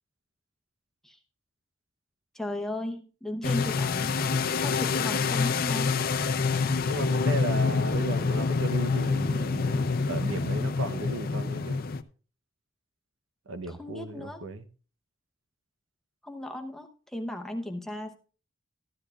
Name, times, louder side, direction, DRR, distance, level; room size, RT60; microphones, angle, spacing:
voice 1, 2.3-4.2 4.6-6.0 13.7-14.4 16.2-18.2, left 1 dB, ahead, 0.8 m, -36 dB
sound 1, 3.4-12.0, left 4 dB, 45° left, 0.5 m, -27 dB
voice 2, 6.8-11.8 13.5-14.7, right 2 dB, 75° right, 0.8 m, -35 dB
14.0 x 10.5 x 2.4 m
head